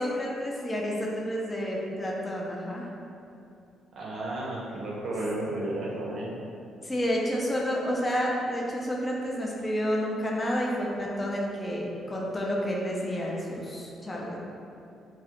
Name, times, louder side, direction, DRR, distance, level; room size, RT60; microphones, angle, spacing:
voice 1, 0.0-2.9 6.8-14.4, equal, 20° left, -3 dB, 0.4 m, -30 dB
voice 2, 4.0-6.3, right 1 dB, 65° right, -4 dB, 0.5 m, -32 dB
2.4 x 2.0 x 2.8 m, 2.6 s
cardioid pair, 90°, 0 cm